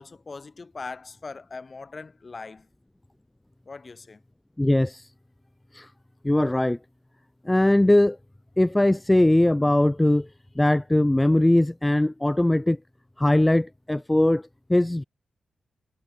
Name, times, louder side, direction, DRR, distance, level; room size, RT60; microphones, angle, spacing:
voice 1, 0.0-2.6 3.7-4.2, left 4 dB, 35° left, 3.2 m, -40 dB
voice 2, 4.6-5.1 5.7-5.9 6.2-6.8 7.5-8.2 8.6-10.3 10.6-12.8 13.2-14.4 14.7-15.0, left 1 dB, 10° left, 0.4 m, -20 dB
wide cardioid pair, 110°, 0 cm